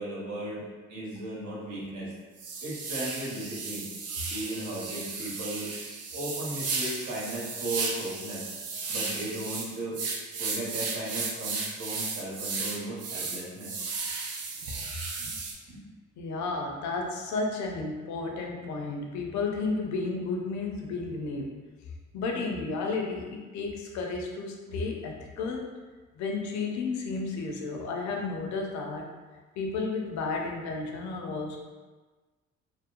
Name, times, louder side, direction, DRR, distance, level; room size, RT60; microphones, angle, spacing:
voice 1, 0.0-2.1 2.6-3.8 4.3-5.7 6.1-8.4 8.9-10.0 10.4-13.7 15.2-15.3 15.7-15.8, right 1 dB, 75° right, -6 dB, 1.1 m, -36 dB
sound 1, 1.2-1.3 1.8-1.9 2.4-15.5, right 4 dB, 55° right, 0.5 m, -34 dB
voice 2, 16.2-21.6 22.1-25.7 26.1-29.1 29.6-31.6, left 3 dB, 70° left, 1 dB, 0.5 m, -32 dB
2.9 x 2.0 x 2.4 m, 1.3 s
cardioid pair, 90°, 30 cm